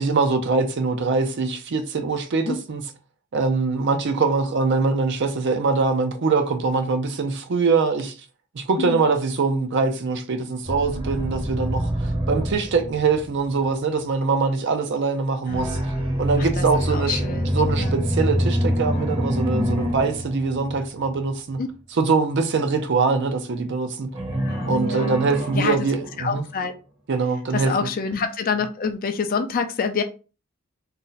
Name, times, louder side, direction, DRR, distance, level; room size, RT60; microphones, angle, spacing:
voice 1, 0.0-2.8 3.3-8.1 8.5-15.8 16.2-21.6 22.0-24.1 24.7-26.4 27.1-27.7, right 4 dB, 50° right, 0.4 m, -23 dB
sound 1, 10.6-13.7 15.5-21.2 24.1-26.6, equal, 25° right, 0.7 m, -26 dB
voice 2, 15.5-16.0 16.4-18.0 19.5-19.8 21.6-21.7 24.4-25.1 25.5-25.8 26.2-26.7 27.5-30.0, left 5 dB, 40° left, 0.4 m, -27 dB
2.6 x 2.1 x 3.8 m
head